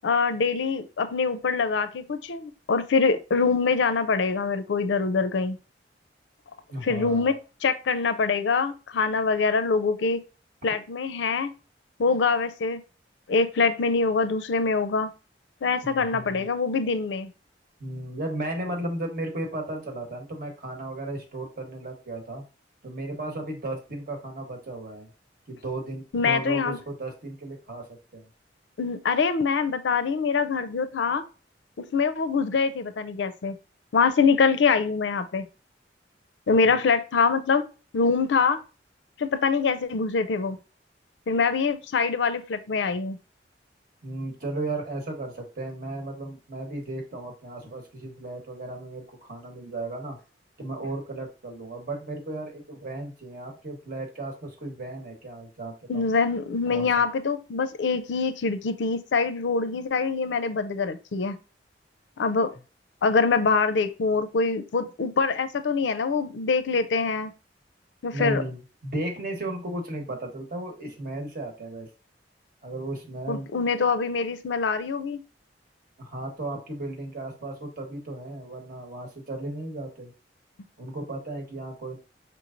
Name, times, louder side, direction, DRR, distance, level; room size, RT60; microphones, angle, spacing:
voice 1, 0.0-5.6 6.8-7.3 7.6-10.2 10.6-11.5 12.0-12.8 13.3-15.1 15.6-17.3 26.1-26.8 28.8-31.2 31.8-33.5 33.9-35.4 36.5-37.6 37.9-38.6 39.2-40.6 41.3-43.2 55.9-61.4 62.2-62.5 63.0-67.3 68.0-68.4 73.3-75.2, left 4 dB, 90° left, 0.5 m, -24 dB
voice 2, 6.7-7.4 15.8-16.5 17.8-22.4 22.8-25.1 25.5-27.9 28.1-28.3 36.6-36.8 44.0-50.2 50.6-56.1 56.7-56.9 68.1-71.9 72.6-73.5 76.0-80.1 80.8-82.0, right 2 dB, 55° right, 1.1 m, -35 dB
4.5 x 3.1 x 2.5 m
head